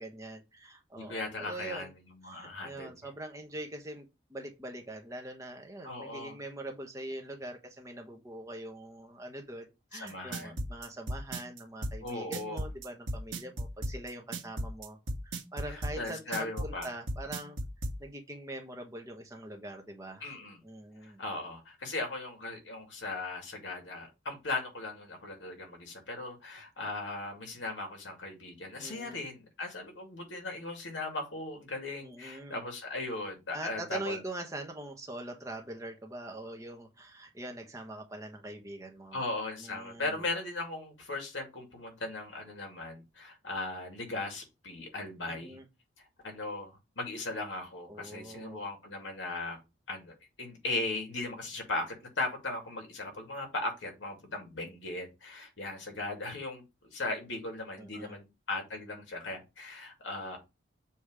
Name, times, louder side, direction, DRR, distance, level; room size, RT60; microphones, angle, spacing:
voice 1, 0.0-1.9 2.2-15.0 15.2-17.6 18.0-20.3 20.6-21.3 28.8-29.2 32.0-32.6 33.5-39.2 39.6-40.2 45.3-45.7 47.9-48.6 57.8-58.2, right 1 dB, 15° right, 1.1 m, -43 dB
voice 2, 0.9-2.9 5.8-6.4 9.9-10.6 12.0-12.6 15.7-16.9 20.2-20.6 21.0-34.2 39.1-45.6 46.2-49.6 49.9-60.4, left 2 dB, 85° left, 2.3 m, -38 dB
sound 1, 10.1-18.0, right 1 dB, 80° right, 1.5 m, -35 dB
7.1 x 3.2 x 4.9 m
head